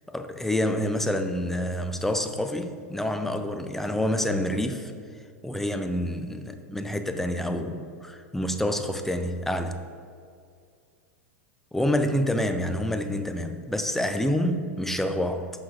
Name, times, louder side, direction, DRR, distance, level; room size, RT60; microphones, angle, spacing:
voice 1, 0.1-4.9 5.4-9.8 11.7-15.5, left 1 dB, 5° left, 7 dB, 0.4 m, -27 dB
5.6 x 4.0 x 5.1 m, 2.3 s
hypercardioid pair, 100°, 8 cm